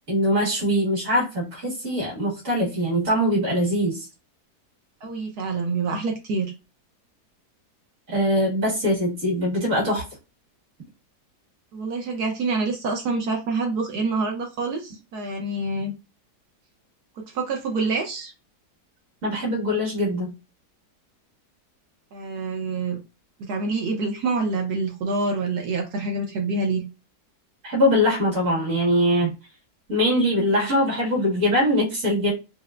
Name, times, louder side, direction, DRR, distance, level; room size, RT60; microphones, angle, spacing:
voice 1, 0.1-4.1 8.1-10.0 19.2-20.3 27.6-29.3 29.9-32.3, equal, 55° right, -3 dB, 2.3 m, -22 dB
voice 2, 5.0-6.5 11.7-15.9 17.2-18.3 22.1-23.0 23.4-26.8, right 3 dB, 75° right, 2 dB, 1.3 m, -26 dB
4.4 x 2.0 x 2.4 m, 0.27 s
omnidirectional pair, 1.8 m